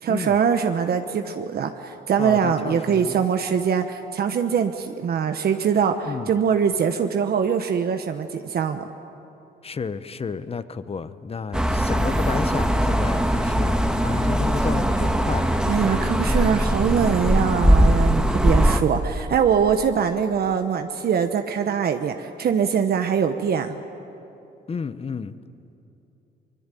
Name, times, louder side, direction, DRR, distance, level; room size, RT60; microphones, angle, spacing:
voice 1, 0.0-8.9 15.7-23.8, right 7 dB, 60° right, 7 dB, 1.1 m, -23 dB
voice 2, 2.2-3.3 6.1-6.3 9.6-15.5 24.7-25.3, left 5 dB, 35° left, 13 dB, 1.0 m, -31 dB
sound 1, 11.5-18.8, equal, 5° right, 1.6 m, -20 dB
24.0 x 21.0 x 9.2 m, 2.9 s
cardioid pair, 90°, 18 cm